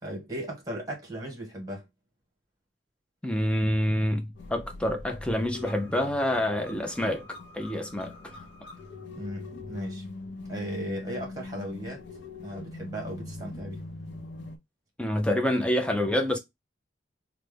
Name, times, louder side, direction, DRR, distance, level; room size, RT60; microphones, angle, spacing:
voice 1, 0.0-1.9 9.1-10.1 10.5-12.0 12.4-13.8, equal, 20° right, 1.2 m, -36 dB
voice 2, 3.2-8.1 15.0-16.4, left 1 dB, 5° left, 0.4 m, -27 dB
sound 1, 4.3-14.6, left 2 dB, 70° left, 0.6 m, -42 dB
3.3 x 2.0 x 3.3 m
head